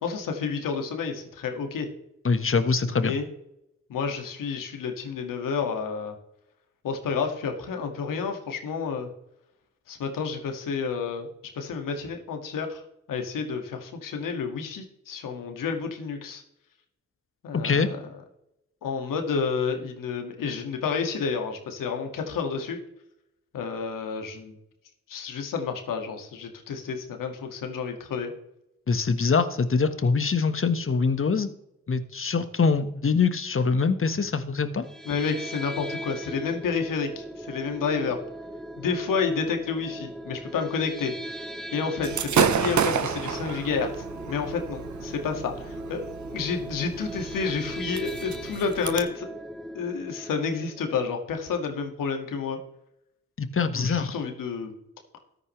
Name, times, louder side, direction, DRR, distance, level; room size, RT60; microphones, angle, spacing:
voice 1, 0.0-1.9 3.0-3.3 3.9-6.2 6.8-9.1 9.9-11.3 11.5-12.8 13.1-16.4 17.4-18.0 18.8-22.8 23.5-24.5 25.1-28.3 35.1-38.2 38.8-41.4 41.7-46.0 46.3-49.3 49.7-52.6 53.7-54.7, left 5 dB, 80° left, 4 dB, 2.1 m, -30 dB
voice 2, 2.2-3.2 17.5-17.9 28.9-31.5 31.9-34.8 53.4-54.2, left 5 dB, 40° left, 10 dB, 1.4 m, -24 dB
sound 1, 34.8-51.0, equal, ahead, 1.0 m, -38 dB
Gunshot gunfire / Fireworks, 42.0-49.0, right 7 dB, 60° right, 1.1 m, -30 dB
14.0 x 9.6 x 3.3 m, 0.82 s
supercardioid pair, 45°, 33 cm